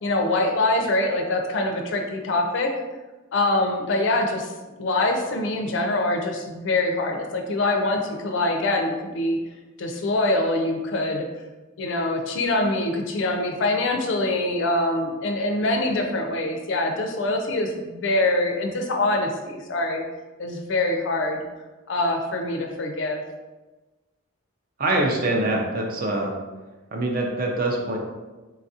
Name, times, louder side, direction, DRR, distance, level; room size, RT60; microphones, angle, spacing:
voice 1, 0.0-2.7 3.3-9.4 9.8-11.3 11.8-20.0 20.4-21.4 21.9-23.2, left 2 dB, 55° left, 3 dB, 0.4 m, -24 dB
voice 2, 24.8-26.3 26.9-28.0, right 2 dB, 40° right, 0 dB, 0.5 m, -24 dB
4.0 x 2.4 x 2.7 m, 1.2 s
head